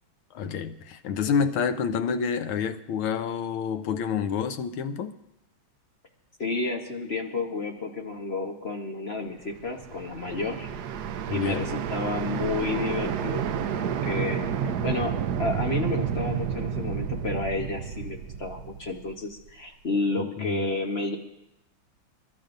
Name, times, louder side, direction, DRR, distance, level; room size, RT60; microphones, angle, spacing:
voice 1, 0.3-5.1 11.3-11.7 20.2-20.6, left 6 dB, 85° left, 1.6 m, -28 dB
voice 2, 6.4-10.7 11.3-13.5 13.8-15.1 15.4-21.2, left 3 dB, 40° left, 1.1 m, -31 dB
sound 1, 9.5-19.5, right 8 dB, 70° right, 1.0 m, -30 dB
27.0 x 13.0 x 2.6 m
omnidirectional pair, 2.3 m